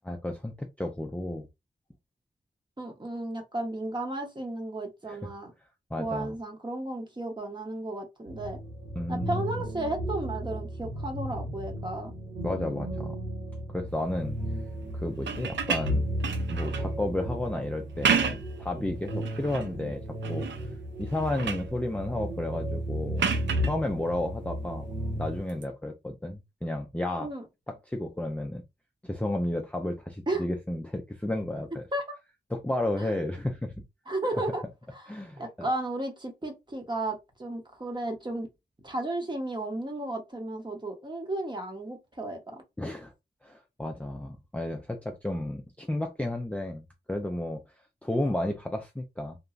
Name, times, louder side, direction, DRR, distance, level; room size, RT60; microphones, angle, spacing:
voice 1, 0.0-1.5 5.1-5.3 5.9-6.3 9.0-9.6 12.4-13.2 13.7-14.4 14.9-16.0 16.5-20.0 20.3-20.5 21.0-23.3 23.6-24.9 25.1-27.3 27.7-28.6 29.0-31.8 32.5-33.8 35.1-35.7 42.8-43.1 43.4-47.6 48.0-49.4, left 1 dB, 5° left, 0.4 m, -32 dB
voice 2, 2.8-5.5 6.0-8.6 9.1-12.1 27.2-27.4 30.3-30.5 31.9-32.2 34.1-34.6 34.9-38.5 38.8-42.6, right 2 dB, 25° right, 1.0 m, -34 dB
sound 1, 8.3-25.4, equal, 65° right, 1.9 m, -34 dB
sound 2, 15.1-16.9 17.8-18.6 19.1-19.7 20.2-20.7 21.0-21.7 23.2-23.7 25.5-25.6, right 7 dB, 85° right, 0.5 m, -30 dB
3.0 x 2.2 x 2.4 m
cardioid pair, 60°, 18 cm